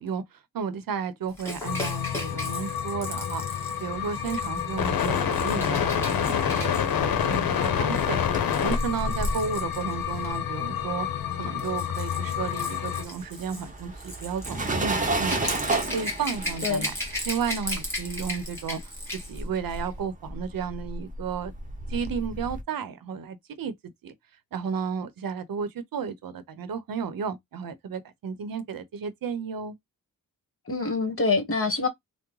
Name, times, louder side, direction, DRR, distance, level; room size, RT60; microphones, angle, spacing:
voice 1, 0.0-8.2 8.6-11.1 11.4-15.6 15.9-16.9 17.3-18.8 19.1-21.5 21.9-23.7 24.0-24.1 24.5-29.8, right 6 dB, 75° right, 0.8 m, -33 dB
Rattle / Rattle (instrument), 1.4-10.4 11.3-19.4 19.7-19.9, left 1 dB, 5° left, 1.5 m, -37 dB
sound 1, 1.6-13.0, left 8 dB, 85° left, 0.7 m, -28 dB
sound 2, 8.2-11.6 11.9-22.6, right 2 dB, 25° right, 0.8 m, -33 dB
voice 2, 30.7-31.9, left 4 dB, 40° left, 1.3 m, -25 dB
3.5 x 2.1 x 3.1 m
cardioid pair, 80°, 34 cm